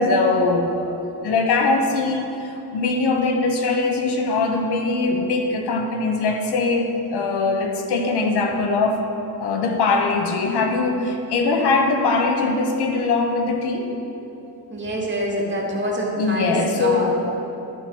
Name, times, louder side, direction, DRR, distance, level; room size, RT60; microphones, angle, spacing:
voice 1, 0.0-9.0 9.4-13.9 16.2-17.1, left 3 dB, 85° left, 3 dB, 1.0 m, -21 dB
voice 2, 14.7-17.2, right 1 dB, 30° right, -3 dB, 2.2 m, -25 dB
13.0 x 4.6 x 5.5 m, 2.9 s
cardioid pair, 65°, 38 cm